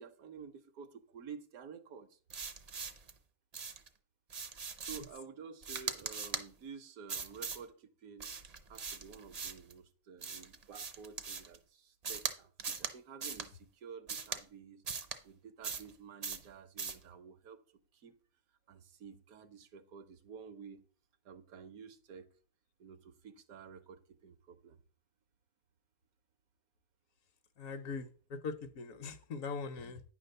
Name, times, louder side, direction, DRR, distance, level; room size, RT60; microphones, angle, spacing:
voice 1, 0.0-2.2 4.8-8.4 8.7-14.8 15.2-17.6 17.9-18.2 18.7-20.8 21.2-22.3 22.8-24.8, right 6 dB, 80° right, 1.2 m, -51 dB
sound 1, 2.3-3.1 3.5-3.9 4.3-5.2 5.6-6.5 7.1-7.6 8.2-9.7 10.2-11.6 12.0-12.3 12.6-12.9 13.2-13.5 14.1-14.4 14.9-15.2 15.6-15.9 16.2-16.5 16.8-17.0, right 5 dB, 45° right, 0.5 m, -40 dB
voice 2, 27.6-30.0, left 4 dB, 70° left, 1.2 m, -41 dB
9.5 x 3.3 x 6.6 m
omnidirectional pair, 1.5 m